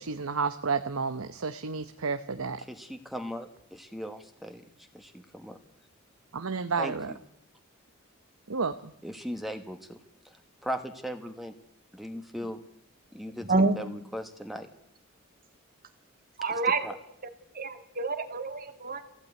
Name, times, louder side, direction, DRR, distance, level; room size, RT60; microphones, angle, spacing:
voice 1, 0.0-2.6 6.3-7.1 8.5-8.9, right 5 dB, 80° right, 10 dB, 0.9 m, -31 dB
voice 2, 2.6-5.6 6.8-7.2 9.0-10.0 10.2-11.5 11.9-12.6 13.1-14.7 16.5-17.0, equal, ahead, 7 dB, 1.3 m, -39 dB
voice 3, 16.4-16.8 17.6-19.0, right 3 dB, 40° right, 8 dB, 2.1 m, -27 dB
20.0 x 16.0 x 9.5 m, 0.74 s
head